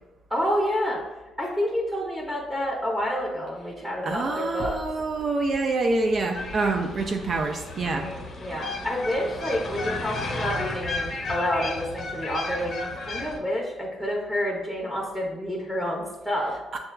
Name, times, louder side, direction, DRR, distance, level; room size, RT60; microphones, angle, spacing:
voice 1, 0.3-1.0 1.4-4.8 7.9-16.6, equal, 5° right, -3 dB, 0.7 m, -29 dB
voice 2, 4.0-8.1 16.7-16.8, right 3 dB, 50° right, 3 dB, 0.3 m, -26 dB
sound 1, 6.3-13.4, left 2 dB, 60° left, 0.7 m, -33 dB
6.3 x 2.3 x 2.2 m, 1.1 s
cardioid pair, 90°, 0 cm